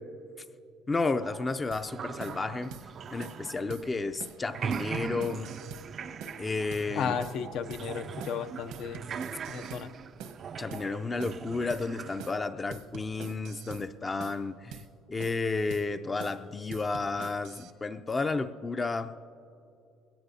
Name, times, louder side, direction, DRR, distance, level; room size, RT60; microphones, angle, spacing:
voice 1, 0.9-2.7 3.1-5.5 6.4-7.2 10.6-19.1, left 3 dB, 20° left, 11 dB, 0.5 m, -32 dB
sound 1, 1.2-4.2 4.4-12.3, right 7 dB, 40° right, 0.3 m, -40 dB
sound 2, 1.7-1.9 2.2-2.4 2.7-2.9 3.2-3.4 3.7-3.9 4.2-4.4 4.7-5.9 6.2-6.4 6.7-6.9 7.2-7.4 7.7-7.9 8.2-8.4 8.7-9.9 10.2-10.4 10.7-10.9 11.2-11.4 11.7-11.9 12.2-12.4 12.7-13.9 14.2-14.4 14.7-14.9 15.2-15.4 15.7-15.9 16.2-16.4 16.7-17.7, right 7 dB, 85° right, 1.0 m, -45 dB
voice 2, 7.0-9.0 9.5-9.9, left 7 dB, 65° left, 9 dB, 0.6 m, -34 dB
21.0 x 18.0 x 2.7 m, 2.6 s
cardioid pair, 115°, 0 cm